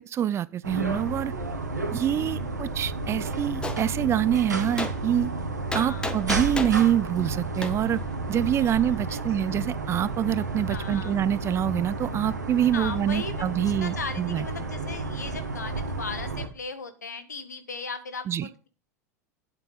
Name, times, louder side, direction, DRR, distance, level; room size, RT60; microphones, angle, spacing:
voice 1, 0.0-1.3 1.9-5.3 5.7-8.0 8.3-14.4 18.3-18.5, right 10 dB, 30° right, 0.5 m, -26 dB
sound 1, 0.6-16.5, right 3 dB, 85° right, 1.7 m, -32 dB
voice 2, 2.1-2.6 5.7-6.1 8.6-9.2 9.5-9.7 10.7-11.2 12.7-18.7, left 4 dB, 80° left, 1.5 m, -38 dB
Gunshot gunfire, 3.6-3.8 4.8-4.9 5.7-6.8 7.6-7.7, left 2 dB, 10° left, 1.5 m, -31 dB
9.1 x 7.9 x 5.3 m
figure-of-eight pair, 85°, 9 cm